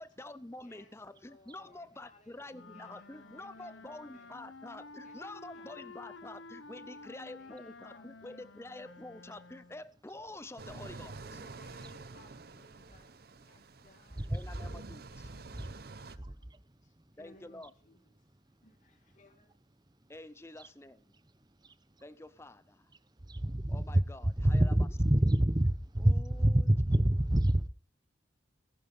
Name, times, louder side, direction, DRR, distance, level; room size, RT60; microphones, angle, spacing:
voice 1, 0.0-11.4 14.3-15.0 17.2-17.7 20.1-21.2 22.0-22.9 23.7-24.7 26.0-26.7, left 2 dB, 15° left, 0.6 m, -48 dB
voice 2, 0.6-4.3 5.0-5.1 5.5-5.9 6.9-8.9 11.2-16.3 16.8-18.0 18.6-19.5, left 1 dB, 40° left, 2.5 m, -63 dB
sound 1, 2.5-9.9, left 3 dB, 75° left, 1.0 m, -51 dB
sound 2, 10.6-16.2, right 3 dB, 50° right, 0.8 m, -48 dB
voice 3, 23.4-24.0 24.4-27.7, right 1 dB, 20° right, 0.9 m, -26 dB
19.0 x 11.5 x 5.4 m
head